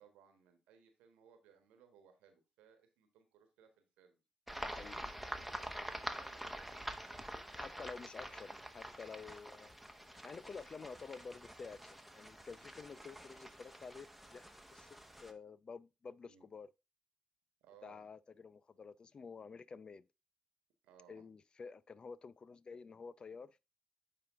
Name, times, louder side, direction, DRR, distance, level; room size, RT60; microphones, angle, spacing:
voice 1, 0.0-4.2 4.6-6.9 16.2-16.5 17.6-18.1 20.8-21.2, right 7 dB, 80° right, 1.3 m, -65 dB
sound 1, 4.5-15.3, right 1 dB, 5° right, 1.1 m, -47 dB
voice 2, 4.6-5.1 7.6-9.7 10.2-16.7 17.8-20.1 21.1-23.6, left 5 dB, 45° left, 0.4 m, -50 dB
9.5 x 3.4 x 3.5 m
hypercardioid pair, 45°, 2 cm